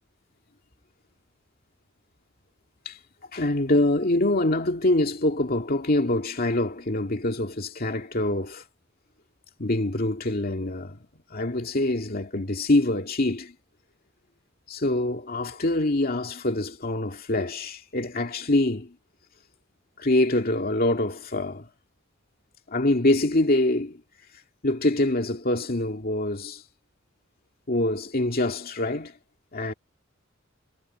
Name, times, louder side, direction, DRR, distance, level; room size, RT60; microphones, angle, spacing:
voice 1, 3.3-8.6 9.6-11.0 11.3-13.5 14.7-19.0 20.0-21.7 22.7-24.0 24.6-26.6 27.7-29.2 29.5-29.7, left 1 dB, 50° left, 2.2 m, -25 dB
head